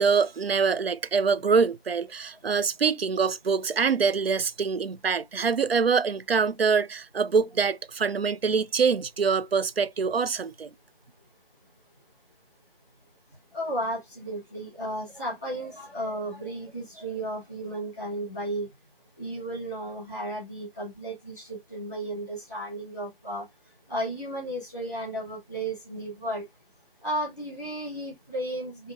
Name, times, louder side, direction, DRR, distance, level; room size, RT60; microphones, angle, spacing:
voice 1, 0.0-10.7, right 5 dB, 85° right, 0.5 m, -24 dB
voice 2, 13.5-18.7 19.2-23.4 23.9-26.4 27.0-28.9, right 1 dB, 5° right, 0.9 m, -34 dB
5.4 x 2.7 x 2.3 m
figure-of-eight pair, 170°, 29 cm